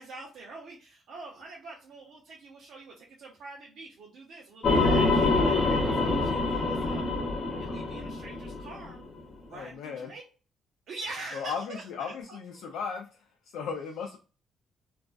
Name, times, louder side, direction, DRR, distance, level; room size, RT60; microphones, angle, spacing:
voice 1, 0.0-7.0 7.6-9.0 9.5-10.2 10.9-12.7, right 3 dB, 70° right, -4 dB, 0.6 m, -44 dB
sound 1, 4.6-9.1, left 3 dB, 45° left, 0.6 m, -26 dB
voice 2, 9.5-10.1 11.3-13.1 13.5-14.2, left 6 dB, 85° left, 2 dB, 0.3 m, -36 dB
2.4 x 2.2 x 2.3 m, 0.35 s
cardioid pair, 90°, 0 cm